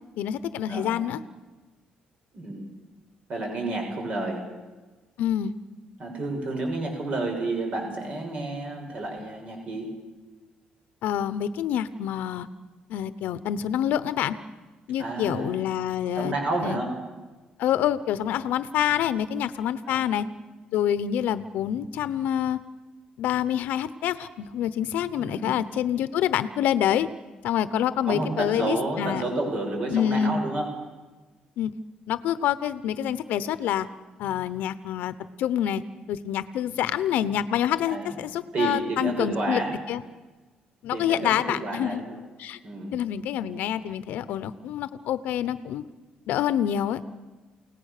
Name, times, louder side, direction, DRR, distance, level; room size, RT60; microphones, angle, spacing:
voice 1, 0.2-1.2 5.2-5.5 11.0-12.5 12.9-14.4 14.9-16.3 16.6-16.8 17.6-20.3 20.7-22.6 23.2-27.1 27.4-29.2 29.9-30.4 31.6-31.7 32.1-33.9 34.2-35.8 36.1-39.6 39.9-40.0 40.8-42.0 42.4-42.6 42.9-45.8 46.3-47.0, left 10 dB, 85° left, 14 dB, 0.9 m, -27 dB
voice 2, 0.7-1.0 2.3-2.7 3.3-4.5 6.0-9.9 15.0-15.6 16.1-17.0 19.8-20.2 25.2-25.6 28.0-30.7 37.8-38.1 38.5-39.8 40.9-42.2 42.6-43.0, right 2 dB, 50° right, 2 dB, 6.4 m, -30 dB
29.5 x 18.0 x 6.7 m, 1.2 s
cardioid pair, 120°, 3 cm